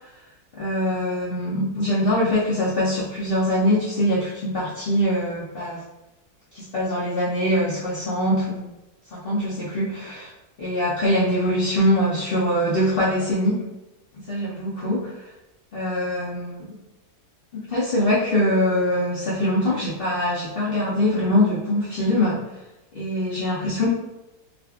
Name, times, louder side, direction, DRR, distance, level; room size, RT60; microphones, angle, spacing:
voice 1, 0.6-5.8 6.5-8.7 9.1-10.3 10.6-13.6 14.3-15.1 15.7-16.8 17.5-22.4 22.9-23.9, left 1 dB, 75° left, -8 dB, 0.5 m, -23 dB
2.5 x 2.4 x 2.3 m, 0.96 s
omnidirectional pair, 1.7 m